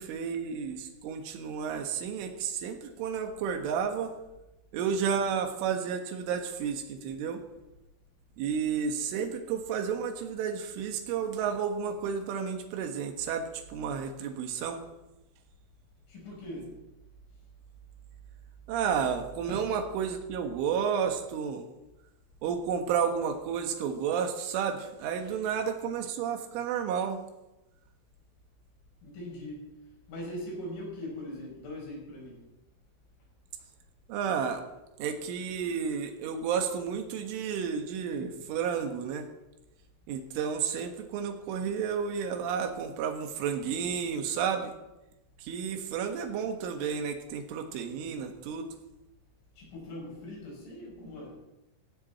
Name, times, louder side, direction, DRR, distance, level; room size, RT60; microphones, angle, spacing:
voice 1, 0.0-4.1 4.7-7.4 8.4-14.8 18.7-21.7 22.4-27.2 34.1-34.6 35.0-39.3 40.1-44.7 45.4-48.7, right 7 dB, 80° right, 5 dB, 3.9 m, -31 dB
voice 2, 16.1-16.7 19.5-19.6 25.2-25.3 29.0-29.7 30.1-32.4 49.6-51.4, left 1 dB, 85° left, -3 dB, 9.3 m, -41 dB
18.0 x 16.0 x 4.3 m, 0.96 s
omnidirectional pair, 5.7 m